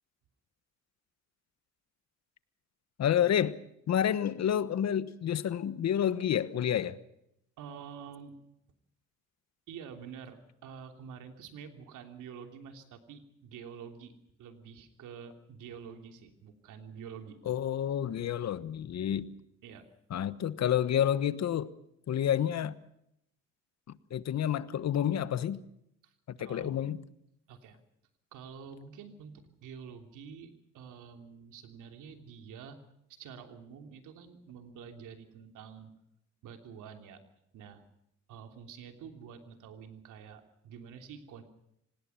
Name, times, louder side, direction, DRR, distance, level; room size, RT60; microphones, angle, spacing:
voice 1, 3.0-3.6 3.9-7.0 17.4-19.3 20.1-21.7 22.1-22.8 23.9-25.6 26.3-27.1, left 10 dB, 60° left, 15 dB, 1.2 m, -29 dB
voice 2, 7.6-8.4 9.7-14.1 14.4-17.4 19.6-19.9 26.0-26.1 26.4-26.8 27.5-27.8 28.3-32.8 33.1-35.9 36.4-37.2 37.5-37.8 38.3-41.4, right 7 dB, 90° right, 6 dB, 3.1 m, -48 dB
25.5 x 19.0 x 5.8 m, 0.77 s
cardioid pair, 90°, 30 cm